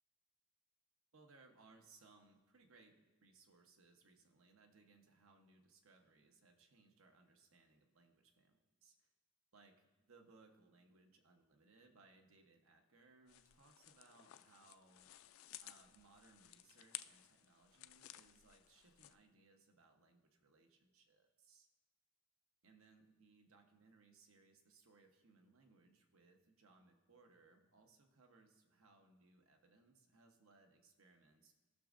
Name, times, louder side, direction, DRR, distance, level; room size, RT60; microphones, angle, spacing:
voice 1, 1.1-9.1 9.5-15.1 15.6-21.7 22.6-31.5, right 3 dB, 85° right, 4 dB, 1.0 m, -68 dB
sound 1, 13.3-19.1, left 14 dB, 80° left, 0.3 m, -56 dB
15.5 x 6.2 x 2.5 m, 1.2 s
head